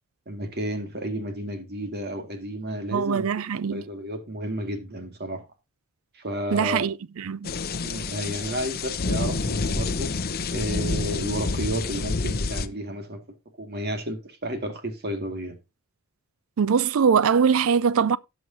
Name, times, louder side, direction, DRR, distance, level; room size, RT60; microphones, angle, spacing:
voice 1, 0.3-3.3 3.7-5.5 6.1-6.9 7.8-10.1 10.5-13.2 13.6-15.6, right 1 dB, 45° right, 2.0 m, -32 dB
voice 2, 2.9-3.8 6.5-7.5 16.6-18.2, right 6 dB, 65° right, 0.4 m, -22 dB
sound 1, 7.4-12.7, left 3 dB, 45° left, 0.7 m, -28 dB
17.5 x 6.3 x 2.7 m
head